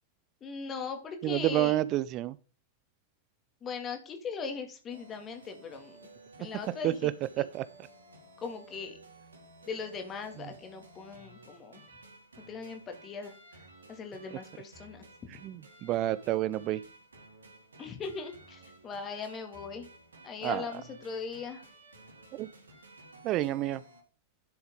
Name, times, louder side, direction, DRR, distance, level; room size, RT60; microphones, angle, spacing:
voice 1, 0.4-1.8 3.6-6.0 6.4-7.1 8.4-9.0 9.7-11.8 12.4-13.3 13.9-15.1 17.8-19.9 20.2-21.6, left 5 dB, 25° left, 5 dB, 2.4 m, -39 dB
voice 2, 1.2-2.4 6.8-7.1 7.4-7.6 15.4-16.8 20.4-20.7 22.3-22.5 23.2-23.8, right 15 dB, 35° right, 16 dB, 0.5 m, -29 dB
sound 1, 4.9-24.0, right 2 dB, 75° right, 2.8 m, -55 dB
11.0 x 7.0 x 3.8 m, 0.36 s
figure-of-eight pair, 90°, 0 cm